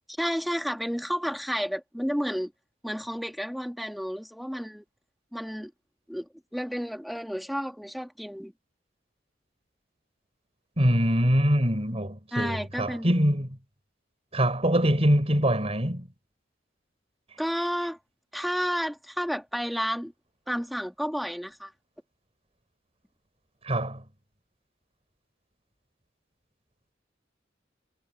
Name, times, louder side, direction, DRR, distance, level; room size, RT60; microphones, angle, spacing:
voice 1, 0.1-2.5 2.8-4.8 5.3-5.7 6.1-8.5 12.3-13.1 17.4-18.0 18.3-20.1 20.5-21.7, equal, ahead, 2.8 m, -31 dB
voice 2, 10.8-13.6 14.3-16.1 23.6-24.0, equal, 35° right, 6.3 m, -24 dB
head